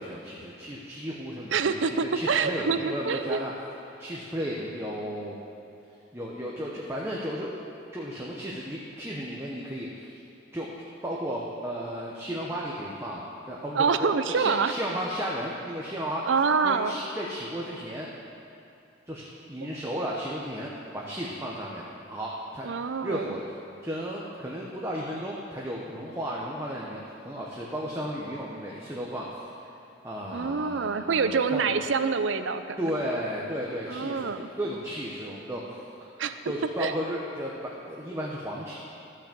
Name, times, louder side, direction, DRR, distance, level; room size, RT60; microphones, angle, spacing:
voice 1, 0.0-3.5 4.0-5.4 6.1-7.5 7.9-10.2 10.5-10.7 11.0-16.3 16.6-18.1 19.1-23.4 23.8-29.5 30.0-31.8 32.8-35.8 36.5-38.7, equal, 15° right, -4 dB, 0.8 m, -34 dB
voice 2, 1.5-3.4 13.8-14.7 16.2-17.0 22.6-23.3 30.3-32.8 33.9-34.5 36.2-36.4 36.8-36.9, right 5 dB, 85° right, 10 dB, 0.5 m, -26 dB
13.0 x 5.9 x 7.0 m, 2.6 s
head